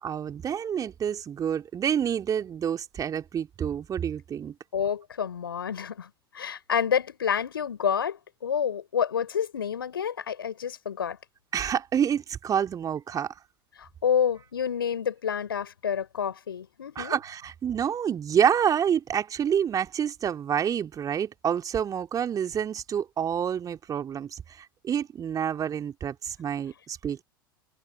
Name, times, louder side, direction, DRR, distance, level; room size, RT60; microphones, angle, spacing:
voice 1, 0.0-4.5 11.5-13.3 17.0-27.2, right 8 dB, 30° right, 2.9 m, -28 dB
voice 2, 4.7-11.2 13.8-17.2, left 8 dB, 75° left, 5.8 m, -29 dB
figure-of-eight pair, 75°, 12 cm